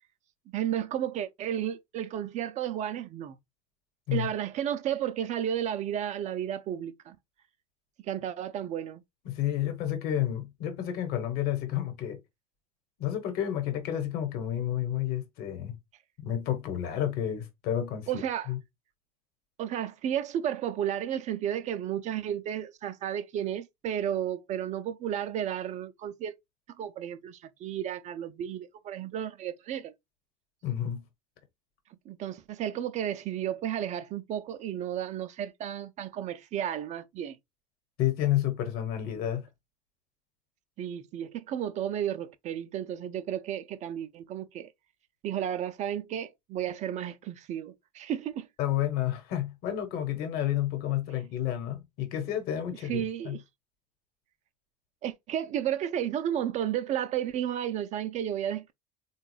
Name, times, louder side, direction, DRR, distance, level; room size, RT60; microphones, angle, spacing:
voice 1, 0.5-3.4 4.1-7.2 8.0-9.0 18.1-18.5 19.6-26.3 26.8-29.9 32.1-37.4 40.8-44.7 45.2-48.5 52.9-53.4 55.0-58.7, right 10 dB, 40° right, 0.4 m, -33 dB
voice 2, 9.2-12.2 13.0-15.8 16.2-18.6 30.6-31.0 38.0-39.4 48.6-53.4, left 11 dB, 55° left, 1.1 m, -30 dB
3.8 x 2.3 x 3.1 m
hypercardioid pair, 70°, 19 cm